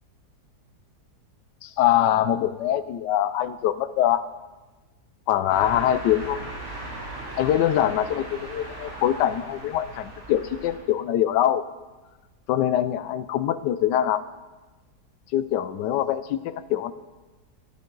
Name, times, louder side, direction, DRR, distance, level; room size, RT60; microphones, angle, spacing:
voice 1, 1.6-4.2 5.3-6.4 7.3-11.6 12.5-14.2 15.3-16.9, left 11 dB, 85° left, 13 dB, 1.2 m, -23 dB
sound 1, 5.5-10.8, right 2 dB, 75° right, 4.2 m, -38 dB
13.5 x 11.0 x 3.9 m, 1.2 s
omnidirectional pair, 1.8 m